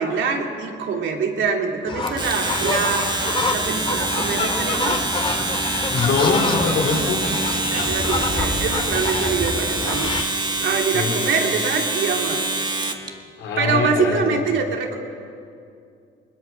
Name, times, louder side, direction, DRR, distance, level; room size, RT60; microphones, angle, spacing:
voice 1, 0.0-5.0 5.3-5.4 6.9-7.3 7.7-10.1 10.6-12.4 13.6-15.0, right 5 dB, 75° right, 2 dB, 2.8 m, -24 dB
sound 1, 1.9-10.2, left 3 dB, 25° left, 2.1 m, -27 dB
Domestic sounds home sounds, 2.1-13.1, right 2 dB, 20° right, 1.6 m, -25 dB
voice 2, 5.9-7.2 10.9-11.1 13.4-14.4, left 4 dB, 85° left, 1 dB, 3.8 m, -22 dB
21.5 x 20.0 x 6.1 m, 2.4 s
cardioid pair, 90°, 20 cm